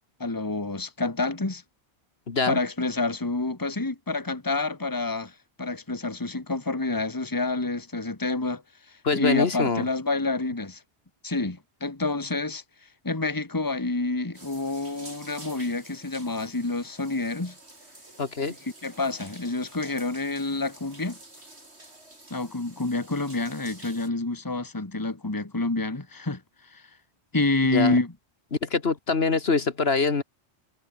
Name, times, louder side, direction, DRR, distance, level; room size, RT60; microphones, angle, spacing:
voice 1, 0.2-1.6 2.5-8.6 8.9-10.8 11.2-12.6 13.0-17.6 18.5-21.2 22.3-26.4 26.7-26.8 27.3-28.1, left 2 dB, 20° left, 1.7 m, -28 dB
voice 2, 2.3-2.6 9.0-9.8 18.2-18.5 27.7-28.0 28.6-30.2, left 4 dB, 65° left, 2.0 m, -24 dB
sound 1, 14.3-24.1, right 2 dB, 75° right, 5.6 m, -49 dB
omnidirectional pair, 1.1 m